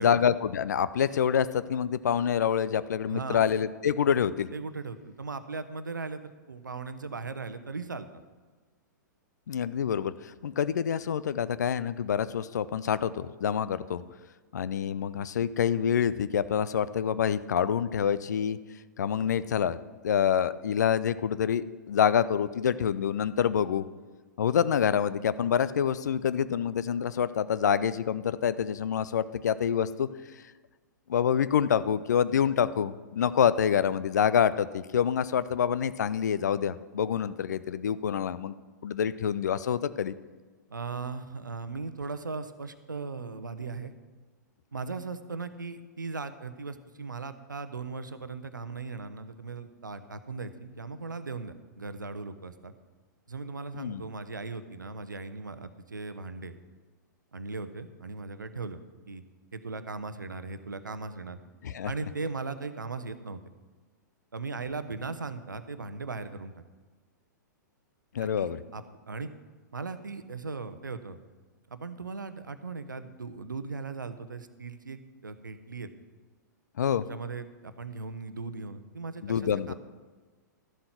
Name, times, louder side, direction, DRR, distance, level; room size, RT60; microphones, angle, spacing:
voice 1, 0.0-4.5 9.5-14.0 14.5-18.6 19.0-19.8 20.0-23.8 24.4-30.1 31.1-38.5 38.8-40.1 53.7-54.0 61.6-61.9 68.1-68.6 76.8-77.0 79.2-79.7, left 8 dB, 60° left, 15 dB, 0.5 m, -27 dB
voice 2, 3.1-3.4 4.5-8.2 40.7-43.9 44.7-52.7 53.3-56.6 57.3-58.8 59.1-59.2 59.5-61.4 61.8-63.4 64.3-66.5 68.2-69.3 69.7-71.2 71.7-75.9 77.1-79.7, right 4 dB, 80° right, 11 dB, 0.8 m, -38 dB
12.5 x 7.6 x 5.9 m, 1.3 s
figure-of-eight pair, 105°, 10 cm